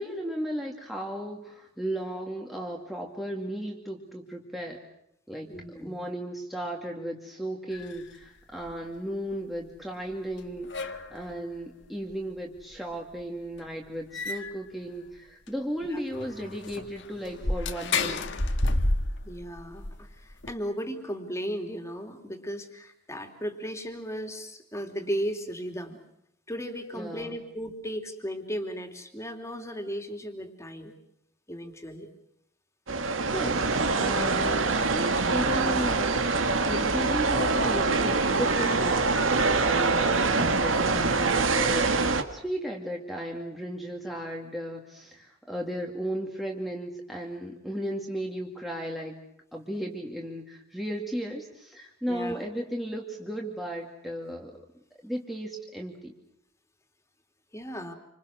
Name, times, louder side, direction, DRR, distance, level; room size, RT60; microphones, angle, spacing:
voice 1, 0.0-4.8 5.3-5.5 5.8-18.3 26.9-27.4 33.3-49.2 49.5-54.6 55.0-56.1, equal, ahead, 0 dB, 2.2 m, -35 dB
voice 2, 5.5-6.0 15.9-16.0 19.2-26.0 26.5-30.9 31.5-32.1 39.7-39.9 44.1-44.2 52.1-52.4 57.5-57.9, equal, 15° left, 5 dB, 3.1 m, -36 dB
sound 1, 7.7-8.2 8.7-8.8 10.1-10.2 10.4-11.3 12.1-12.2 12.6-12.7 13.2-13.3 13.6-13.7 14.1-14.7 15.2-15.3 15.5-15.6 16.1-20.5, left 2 dB, 60° left, 1.7 m, -31 dB
sound 2, 32.9-42.2, right 3 dB, 75° right, 2.0 m, -24 dB
28.0 x 26.5 x 6.4 m, 0.76 s
head